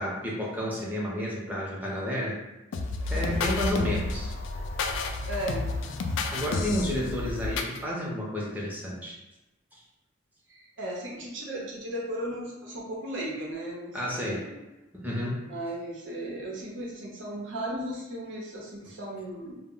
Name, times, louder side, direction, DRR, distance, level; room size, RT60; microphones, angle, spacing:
voice 1, 0.0-2.4 3.0-4.3 6.3-9.2 13.9-14.5 14.9-15.4, equal, 10° right, -4 dB, 0.5 m, -31 dB
sound 1, 2.7-7.8, left 3 dB, 85° left, 0.3 m, -31 dB
voice 2, 3.1-3.5 5.3-5.7 10.5-14.4 15.5-19.6, right 1 dB, 85° right, -2 dB, 0.7 m, -36 dB
2.1 x 2.0 x 3.7 m, 0.99 s
head